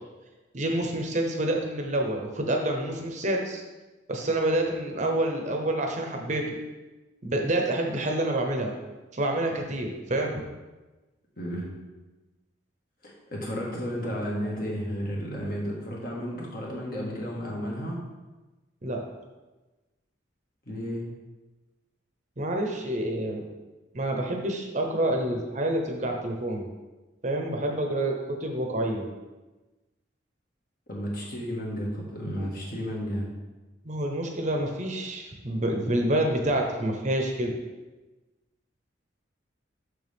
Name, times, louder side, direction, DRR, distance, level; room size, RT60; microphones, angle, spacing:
voice 1, 0.5-3.6 4.1-6.4 7.2-8.7 9.1-10.4 18.8-19.0 22.4-23.4 23.9-26.6 27.2-29.0 33.8-37.5, right 1 dB, 35° right, 2 dB, 0.8 m, -28 dB
voice 2, 11.4-11.7 13.0-18.0 20.7-21.0 30.9-33.3, equal, 50° left, -3 dB, 1.6 m, -32 dB
6.6 x 6.5 x 3.5 m, 1.2 s
head